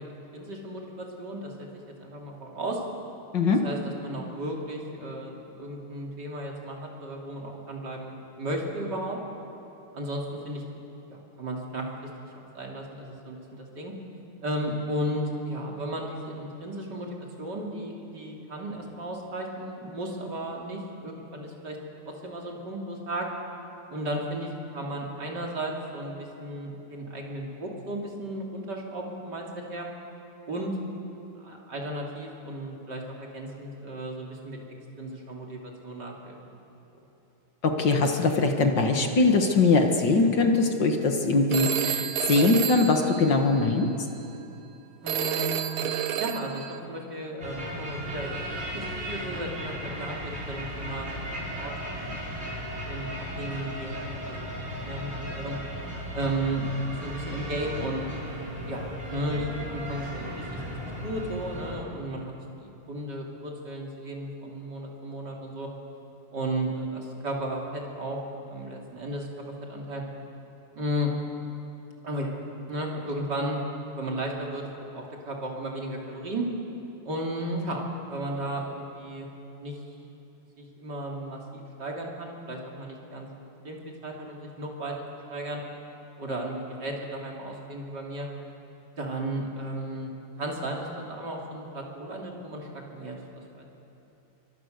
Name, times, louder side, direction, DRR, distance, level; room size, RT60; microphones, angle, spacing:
voice 1, 0.0-1.7 2.0-2.8 3.6-9.2 9.9-10.6 11.1-11.9 12.5-13.9 14.4-21.8 22.1-23.3 23.9-29.9 30.5-30.8 31.4-34.6 35.0-36.4 45.0-45.8 46.2-48.4 48.7-52.6 52.9-55.6 56.1-56.6 56.9-58.0 58.7-60.6 61.0-62.3 62.6-65.7 66.3-68.2 68.5-70.0 70.7-71.1 72.0-72.4 72.7-73.6 74.0-74.7 74.9-76.5 77.0-79.3 79.6-79.8 80.6-83.3 83.6-85.0 85.3-85.6 86.2-88.3 89.0-90.1 90.4-93.8, right 1 dB, 50° right, -1 dB, 3.6 m, -34 dB
voice 2, 37.6-43.9, left 3 dB, 55° left, 4 dB, 2.2 m, -22 dB
Telephone, 41.5-43.9 45.1-46.8, right 10 dB, 75° right, 1.7 m, -30 dB
sound 1, 47.4-61.8, equal, 30° right, 5.7 m, -36 dB
28.5 x 23.5 x 6.7 m, 2.9 s
omnidirectional pair, 2.4 m